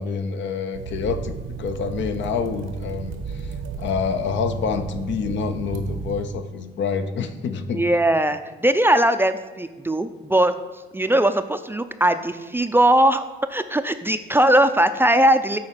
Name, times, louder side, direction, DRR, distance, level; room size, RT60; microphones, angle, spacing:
voice 1, 0.0-7.8, left 5 dB, 70° left, 9 dB, 0.7 m, -27 dB
sound 1, 0.7-6.3, right 6 dB, 85° right, 1.0 m, -33 dB
voice 2, 7.7-10.5 10.9-13.2 13.5-15.6, right 1 dB, 10° right, 10 dB, 0.4 m, -19 dB
7.7 x 4.3 x 5.8 m, 1.3 s
cardioid pair, 90°, 20 cm